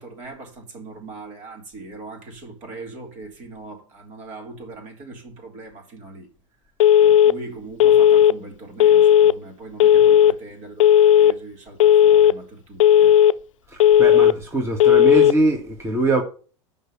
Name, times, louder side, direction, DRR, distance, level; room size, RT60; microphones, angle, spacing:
voice 1, 0.0-6.3 7.0-13.1, right 2 dB, 45° right, 3.6 m, -39 dB
Telephone, 6.8-7.3 7.8-8.3 8.8-9.3 9.8-10.3 10.8-11.3 11.8-12.3 12.8-13.3 13.8-14.3 14.8-15.3, left 10 dB, 80° left, 0.4 m, -13 dB
voice 2, 13.7-16.2, right 2 dB, 15° right, 2.0 m, -22 dB
6.6 x 5.5 x 7.1 m
hypercardioid pair, 85°, 16 cm